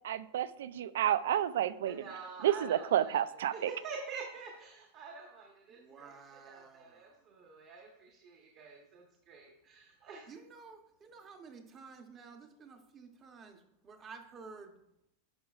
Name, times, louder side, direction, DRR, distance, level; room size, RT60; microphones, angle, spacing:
voice 1, 0.0-2.0 2.4-3.7, right 11 dB, 85° right, 16 dB, 0.3 m, -30 dB
voice 2, 1.9-10.3, right 5 dB, 40° right, 0 dB, 1.1 m, -47 dB
voice 3, 5.7-7.2 10.3-14.8, right 5 dB, 25° right, 6 dB, 0.8 m, -52 dB
11.0 x 5.1 x 2.4 m, 0.81 s
supercardioid pair, 155°, 0 cm